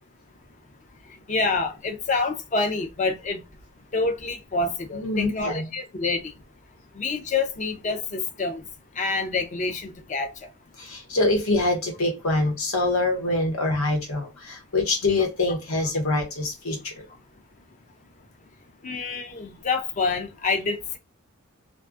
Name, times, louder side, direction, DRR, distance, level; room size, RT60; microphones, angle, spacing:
voice 1, 1.3-3.4 3.9-6.3 6.9-8.6 9.0-10.3 18.8-21.0, left 3 dB, 35° left, 0.4 m, -27 dB
voice 2, 4.9-5.7 10.8-16.9, left 2 dB, 80° left, 1.0 m, -25 dB
2.4 x 2.2 x 2.4 m
head